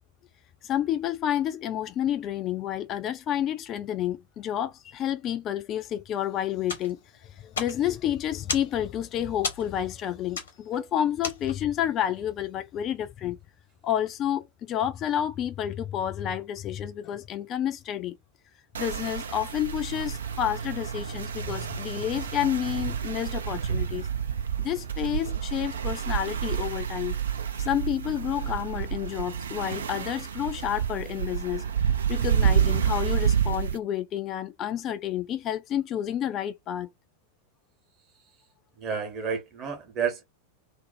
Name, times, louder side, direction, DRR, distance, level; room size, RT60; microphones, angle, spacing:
voice 1, 0.6-13.4 13.8-18.2 18.8-24.1 24.6-27.2 27.6-31.7 32.1-36.9, left 10 dB, 30° left, 0.3 m, -30 dB
sound 1, 6.6-11.8, left 5 dB, 65° left, 0.8 m, -37 dB
sound 2, 18.7-33.8, right 8 dB, 65° right, 0.4 m, -29 dB
voice 2, 38.8-40.2, right 6 dB, 30° right, 0.9 m, -30 dB
2.5 x 2.0 x 2.5 m
figure-of-eight pair, 90°, 0 cm